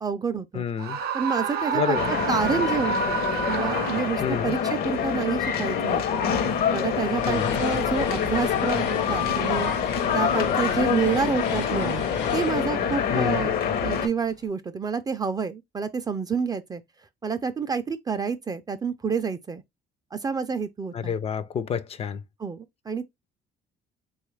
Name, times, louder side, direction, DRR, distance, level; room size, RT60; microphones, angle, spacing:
voice 1, 0.0-0.6 1.1-6.2 6.7-9.7 10.1-12.0 12.3-13.5 13.8-16.8 17.2-19.6 20.1-21.1 22.4-23.0, right 5 dB, 25° right, 0.4 m, -28 dB
voice 2, 0.5-1.0 1.7-2.1 4.2-4.5 7.3-7.5 13.1-13.5 20.9-22.2, left 7 dB, 35° left, 0.4 m, -28 dB
Screaming, 0.8-4.5, right 5 dB, 65° right, 0.7 m, -29 dB
sound 1, 1.9-14.1, left 7 dB, 65° left, 0.8 m, -26 dB
sound 2, 6.7-14.1, left 6 dB, 85° left, 1.1 m, -34 dB
3.6 x 2.4 x 3.1 m
cardioid pair, 110°, 17 cm